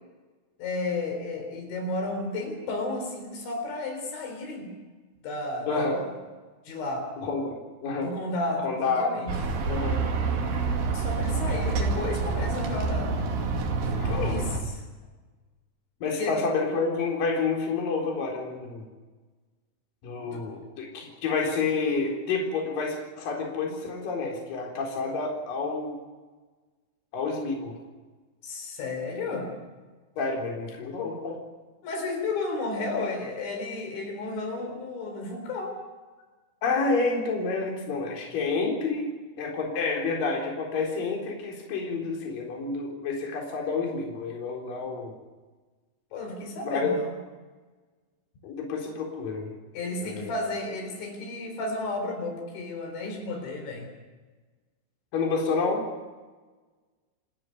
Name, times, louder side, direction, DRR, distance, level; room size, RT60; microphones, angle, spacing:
voice 1, 0.6-4.7 5.2-6.1 6.7-7.1 8.0-9.4 10.9-13.2 13.8-14.8 16.2-16.4 20.2-20.4 28.4-29.5 31.8-35.8 46.1-47.2 49.7-53.9, left 2 dB, 75° left, 3 dB, 6.3 m, -33 dB
voice 2, 5.7-6.0 7.2-8.1 8.6-9.1 9.7-10.0 13.9-14.4 16.0-18.8 20.0-26.0 27.1-27.7 30.2-31.4 36.6-39.1 39.4-45.1 46.6-46.9 48.4-49.5 50.0-50.3 55.1-55.8, left 4 dB, 50° left, 0 dB, 5.4 m, -29 dB
sound 1, 9.3-14.6, right 4 dB, 55° right, 3.8 m, -27 dB
28.5 x 13.0 x 9.4 m, 1.3 s
omnidirectional pair, 5.4 m